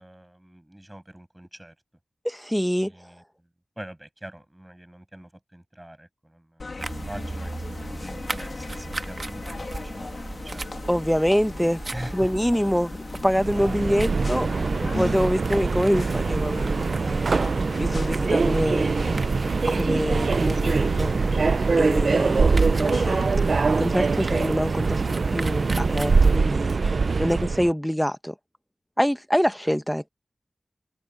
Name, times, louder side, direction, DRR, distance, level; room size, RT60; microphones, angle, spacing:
voice 1, 0.0-1.7 2.9-3.2 3.8-6.6 6.9-10.6 11.9-12.3 27.4-27.5, right 1 dB, 15° right, 7.5 m, -43 dB
voice 2, 2.2-2.9 10.9-11.8 12.1-13.0 13.2-14.5 14.8-17.3 17.8-19.0 19.6-21.1 21.7-23.2 23.8-26.8 27.2-28.3 29.0-30.1, equal, ahead, 1.0 m, -25 dB
sound 1, 6.6-23.3, left 3 dB, 60° left, 2.3 m, -38 dB
sound 2, 6.8-26.4, right 3 dB, 50° right, 1.4 m, -38 dB
Subway metro underground, 13.3-27.7, right 4 dB, 70° right, 0.4 m, -23 dB
cardioid pair, 45°, 0 cm